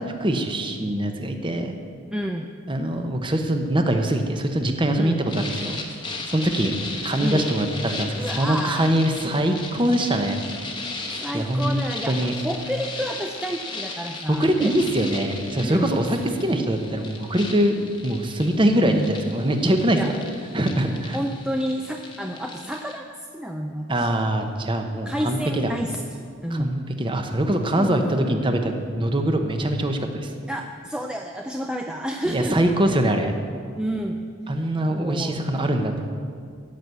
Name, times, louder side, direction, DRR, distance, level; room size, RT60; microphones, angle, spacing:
voice 1, 0.0-1.8 2.7-5.8 6.2-6.7 7.0-10.4 11.3-11.8 12.1-12.3 14.3-17.8 18.0-20.0 20.5-21.2 23.9-25.7 26.5-30.3 32.3-33.3 34.5-36.0, right 1 dB, 25° right, 5 dB, 0.9 m, -23 dB
voice 2, 2.1-2.5 5.0-5.2 7.2-7.5 8.1-8.9 11.2-14.7 15.6-15.9 18.8-19.1 19.9-20.1 21.1-24.1 25.1-26.7 27.8-28.4 30.5-32.7 33.8-34.2 34.9-35.4, equal, 5° right, 3 dB, 0.4 m, -30 dB
sound 1, 5.3-23.0, left 3 dB, 20° left, 1.0 m, -36 dB
15.0 x 6.1 x 8.1 m, 2.2 s
head